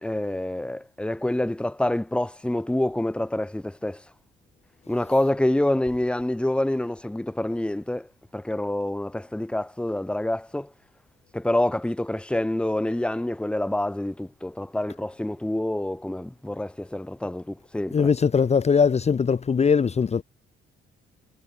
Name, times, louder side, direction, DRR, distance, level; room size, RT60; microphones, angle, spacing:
voice 1, 0.0-4.0 4.9-10.7 11.3-18.1, left 1 dB, 5° left, 1.3 m, -27 dB
voice 2, 17.9-20.2, left 6 dB, 35° left, 1.0 m, -20 dB
cardioid pair, 90°, 20 cm